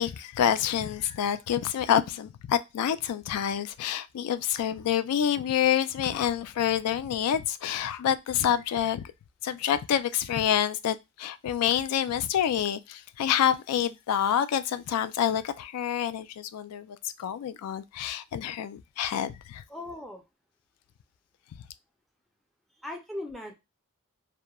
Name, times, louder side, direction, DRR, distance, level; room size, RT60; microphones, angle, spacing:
voice 1, 0.0-9.1 9.4-19.6, left 9 dB, 85° left, 0.3 m, -27 dB
voice 2, 19.7-20.2 22.8-23.5, left 1 dB, ahead, 0.4 m, -38 dB
2.9 x 2.1 x 2.2 m
head